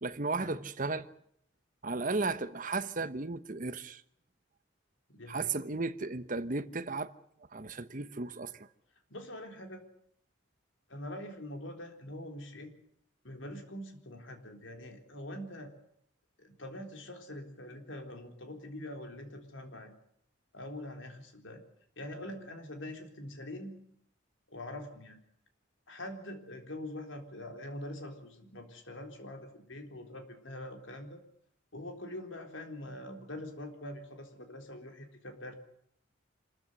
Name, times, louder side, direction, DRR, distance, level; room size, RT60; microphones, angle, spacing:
voice 1, 0.0-1.1 1.8-4.0 5.3-7.1 7.5-8.5, right 3 dB, 40° right, 1.1 m, -34 dB
voice 2, 5.1-5.6 9.1-9.8 10.9-12.7 13.2-15.7 16.4-19.9 20.5-21.6 22.0-23.8 24.5-25.2 25.9-31.2 31.7-35.5, left 1 dB, 70° left, 3.9 m, -44 dB
26.0 x 14.5 x 9.8 m
head